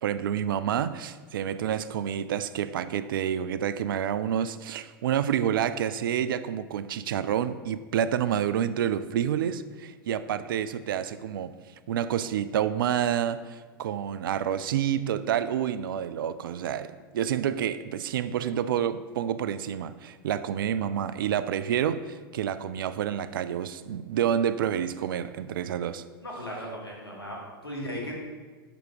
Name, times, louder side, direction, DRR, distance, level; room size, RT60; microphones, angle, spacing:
voice 1, 0.0-11.5 11.9-26.0, right 9 dB, 65° right, 13 dB, 0.4 m, -28 dB
voice 2, 26.2-28.1, equal, 90° left, -2 dB, 1.7 m, -37 dB
6.1 x 5.2 x 4.6 m, 1.4 s
figure-of-eight pair, 95°, 12 cm